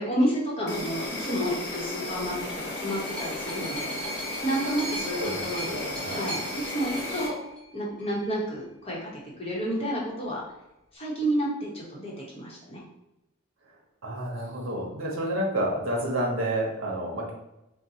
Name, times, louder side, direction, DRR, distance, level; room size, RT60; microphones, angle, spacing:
voice 1, 0.0-3.9 4.4-6.4 6.7-7.3 7.7-9.1 9.4-10.4 10.9-12.8, right 1 dB, 30° left, -4 dB, 0.9 m, -30 dB
Insect, 0.7-7.3, left 2 dB, 55° left, 0.7 m, -35 dB
sound 1, 2.3-8.2 9.1-9.2, right 1 dB, 5° left, 1.0 m, -39 dB
voice 2, 5.2-6.3 14.0-17.3, right 1 dB, 75° right, -2 dB, 0.8 m, -30 dB
4.1 x 2.1 x 2.7 m, 0.90 s
head